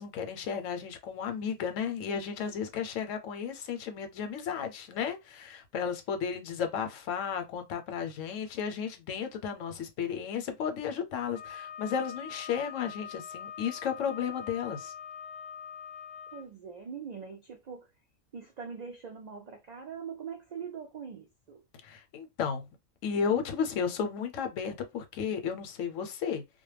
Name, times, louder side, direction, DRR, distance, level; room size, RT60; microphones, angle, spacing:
voice 1, 0.0-14.9 21.8-22.6 23.0-26.4, left 7 dB, 85° left, 1.0 m, -33 dB
Wind instrument woodwind instrument, 11.3-16.5, left 8 dB, 65° left, 0.4 m, -43 dB
voice 2, 16.3-17.9 18.3-21.6, right 6 dB, 85° right, 0.3 m, -42 dB
2.2 x 2.1 x 3.2 m
omnidirectional pair, 1.3 m